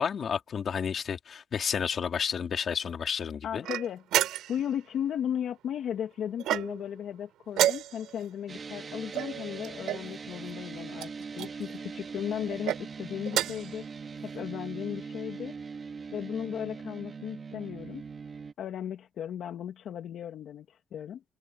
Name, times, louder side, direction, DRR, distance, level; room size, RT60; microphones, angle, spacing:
voice 1, 0.0-3.7, left 7 dB, 55° left, 3.5 m, -31 dB
voice 2, 3.4-4.0 4.5-13.8 14.2-15.5 16.1-18.0 18.6-21.2, left 9 dB, 70° left, 1.7 m, -36 dB
sound 1, 3.6-4.7 6.4-7.0 7.5-8.2 9.1-10.1 11.0-11.5 12.5-12.8 13.3-13.7, right 13 dB, 85° right, 3.7 m, -30 dB
sound 2, 8.5-18.5, right 5 dB, 40° right, 2.4 m, -41 dB
open air
cardioid pair, 90°, 0 cm